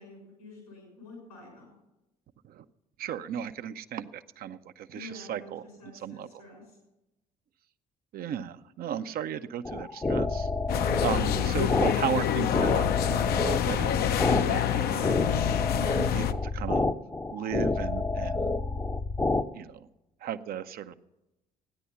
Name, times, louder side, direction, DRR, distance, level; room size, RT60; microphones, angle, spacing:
voice 1, 0.0-1.7 4.9-6.8, left 2 dB, 85° left, -1 dB, 6.1 m, -48 dB
voice 2, 3.0-5.6 5.9-6.4 8.1-10.5 11.0-15.1 15.8-16.9 17.3-18.6 19.5-19.9 20.2-20.9, right 9 dB, 55° right, 11 dB, 0.6 m, -35 dB
sound 1, 9.6-19.4, left 3 dB, 15° left, 0.6 m, -29 dB
sound 2, 10.7-16.3, left 11 dB, 55° left, 0.6 m, -27 dB
14.0 x 9.9 x 5.7 m, 0.95 s
hypercardioid pair, 50°, 19 cm